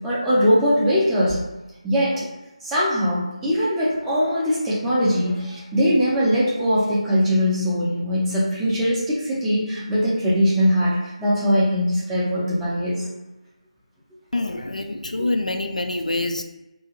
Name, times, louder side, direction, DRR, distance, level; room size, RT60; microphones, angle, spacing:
voice 1, 0.0-1.4 1.8-2.3 2.6-13.0 15.2-15.3, equal, 5° right, -9 dB, 0.4 m, -21 dB
voice 2, 14.3-16.4, left 2 dB, 85° left, 6 dB, 0.3 m, -26 dB
2.5 x 2.3 x 2.9 m, 1.0 s
figure-of-eight pair, 165°, 4 cm